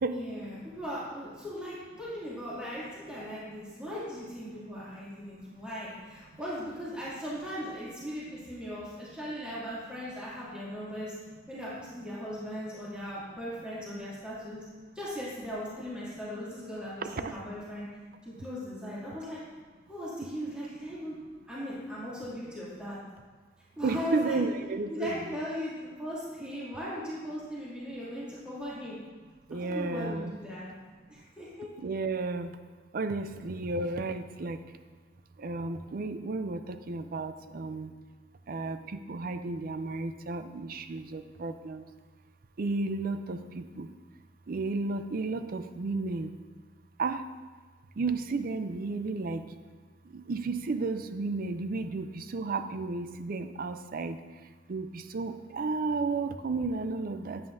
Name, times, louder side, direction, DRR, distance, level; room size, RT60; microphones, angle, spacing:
voice 1, 0.1-11.1 11.5-14.6 14.9-17.9 18.2-19.4 19.9-21.2 21.5-23.0 23.7-24.5 24.9-29.0 29.5-30.7 31.1-31.7, equal, 5° right, -9 dB, 2.4 m, -38 dB
voice 2, 17.0-17.3 23.8-25.2 29.5-30.3 31.8-32.6 32.9-34.6 35.4-37.9 38.5-38.8 39.1-41.8 42.6-43.9 44.5-46.3 47.0-47.2 48.0-49.4 50.1-54.2 54.7-57.4, right 3 dB, 50° right, 10 dB, 0.4 m, -33 dB
9.0 x 9.0 x 2.6 m, 1.4 s
head